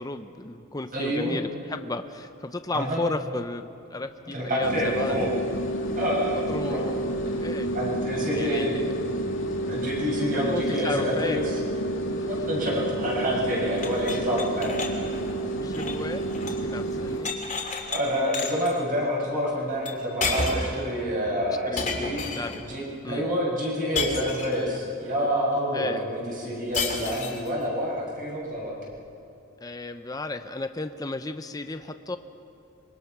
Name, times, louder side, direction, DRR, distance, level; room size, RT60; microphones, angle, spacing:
voice 1, 0.0-5.2 6.3-7.7 8.3-8.9 10.3-11.5 12.2-12.3 15.6-17.3 21.6-22.7 23.0-23.2 25.7-26.0 29.6-32.2, left 2 dB, 20° left, 8 dB, 0.7 m, -34 dB
voice 2, 0.9-1.4 2.7-3.0 4.3-5.3 6.0-6.8 7.7-8.8 9.6-11.6 12.3-14.8 16.8-16.9 17.9-22.2 22.6-28.7, equal, 40° right, -4 dB, 7.2 m, -28 dB
sound 1, 4.6-17.3, right 1 dB, 70° left, 2.2 m, -30 dB
sound 2, 13.8-16.7 16.9-18.0 18.3-18.7 19.9-20.0 20.2-20.8 21.8-22.6 24.0-24.8 26.7-27.5, left 4 dB, 40° left, 3.0 m, -31 dB
25.5 x 23.0 x 6.1 m, 2.6 s
head